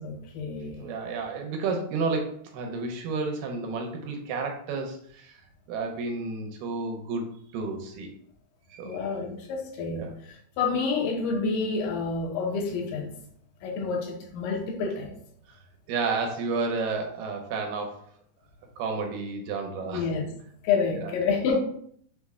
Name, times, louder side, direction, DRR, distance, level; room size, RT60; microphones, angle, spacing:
voice 1, 0.0-0.9 8.8-13.1 13.6-15.1 19.9-20.3 20.6-21.6, left 4 dB, 85° left, 2.4 m, -28 dB
voice 2, 0.8-5.4 5.7-7.3 7.5-8.1 8.7-9.0 9.9-10.1 15.5-15.6 15.9-18.1 18.8-20.1 20.9-21.1, right 4 dB, 85° right, 2.3 m, -31 dB
6.1 x 2.1 x 3.5 m
omnidirectional pair, 3.8 m